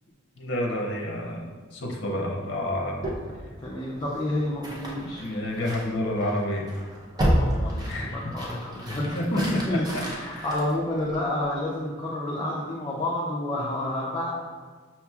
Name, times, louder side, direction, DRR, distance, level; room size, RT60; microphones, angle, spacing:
voice 1, 0.4-3.0 5.0-6.7 7.9-8.3 9.1-10.5, left 1 dB, 60° left, 0 dB, 0.6 m, -30 dB
sound 1, 3.0-11.5, equal, 20° right, 0.6 m, -31 dB
voice 2, 3.6-5.2 7.3-14.3, left 1 dB, 20° left, -5 dB, 0.4 m, -29 dB
5.6 x 2.9 x 2.3 m, 1.5 s
head